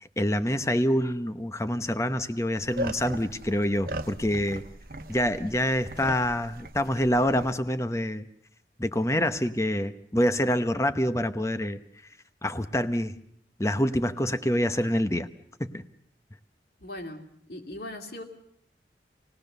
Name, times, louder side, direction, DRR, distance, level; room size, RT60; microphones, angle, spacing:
voice 1, 0.2-4.6 5.1-8.3 8.8-11.8 12.4-13.1 13.6-15.3 15.6-15.8, equal, 15° left, 11 dB, 0.8 m, -26 dB
sound 1, 2.5-7.5, right 1 dB, 50° right, 1.0 m, -38 dB
voice 2, 16.8-17.2 17.5-18.2, left 1 dB, 65° left, 4 dB, 2.5 m, -38 dB
27.5 x 18.5 x 6.7 m, 0.68 s
head